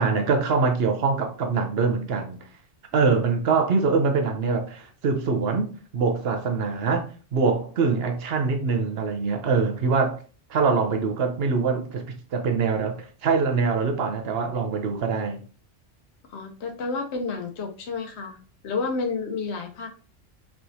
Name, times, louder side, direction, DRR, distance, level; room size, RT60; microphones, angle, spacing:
voice 1, 0.0-2.4 2.9-10.2 10.5-15.4, right 4 dB, 70° right, 0.9 m, -24 dB
voice 2, 16.3-18.4 18.6-19.9, left 4 dB, 90° left, 1.0 m, -30 dB
4.3 x 3.5 x 2.6 m
omnidirectional pair, 1.1 m